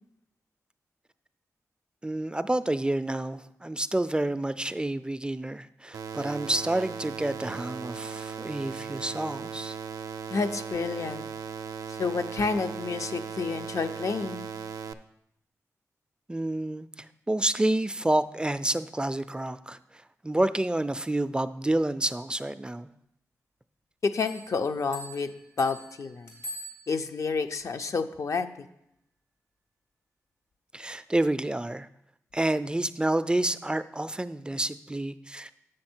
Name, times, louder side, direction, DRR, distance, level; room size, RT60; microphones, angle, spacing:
voice 1, 2.0-9.8 16.3-22.9 30.7-31.9 32.3-35.5, right 1 dB, 15° right, 13 dB, 0.3 m, -29 dB
sound 1, 5.9-14.9, right 6 dB, 85° right, 0.4 m, -38 dB
voice 2, 10.3-11.3 11.9-14.5 24.0-25.3 25.6-26.4 26.9-28.7, left 4 dB, 60° left, 8 dB, 0.5 m, -29 dB
sound 2, 24.2-27.3, equal, 80° left, 1.8 m, -44 dB
7.3 x 6.4 x 4.4 m, 0.79 s
cardioid pair, 55°, 6 cm